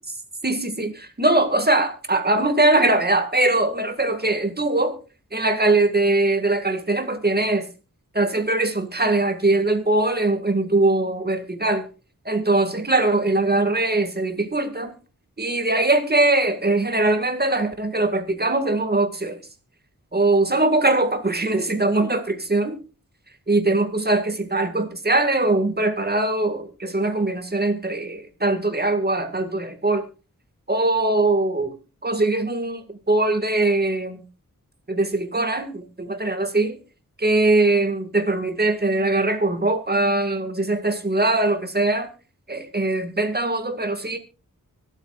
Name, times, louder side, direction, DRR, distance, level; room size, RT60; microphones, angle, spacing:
voice 1, 0.4-5.0 5.3-7.7 8.1-11.9 12.3-14.9 15.4-19.4 20.1-22.8 23.5-30.1 30.7-31.8 32.0-34.2 34.9-36.8 37.2-42.1 42.5-44.2, right 2 dB, 30° right, 2.1 m, -21 dB
24.0 x 8.4 x 2.5 m
wide cardioid pair, 65°, 33 cm